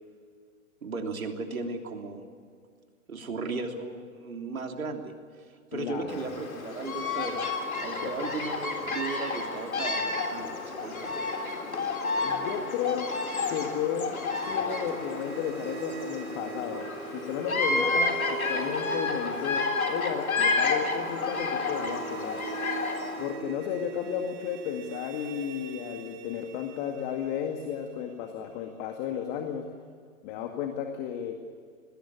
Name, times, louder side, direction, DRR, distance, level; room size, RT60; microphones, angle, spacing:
voice 1, 0.8-2.2 3.1-5.1 5.7-7.4 7.8-11.1, right 3 dB, 85° right, 3 dB, 3.3 m, -36 dB
voice 2, 5.7-6.4 8.0-8.1 12.2-13.1 13.5-14.1 14.4-22.4 23.2-29.6 30.2-31.4, left 8 dB, 35° left, 4 dB, 2.1 m, -33 dB
Bird vocalization bird call bird song, 6.1-23.3, left 3 dB, 85° left, 3.7 m, -30 dB
sound 1, 14.0-29.0, right 6 dB, 30° right, 2.5 m, -42 dB
20.5 x 17.5 x 8.7 m, 2.1 s
hypercardioid pair, 130°, 41 cm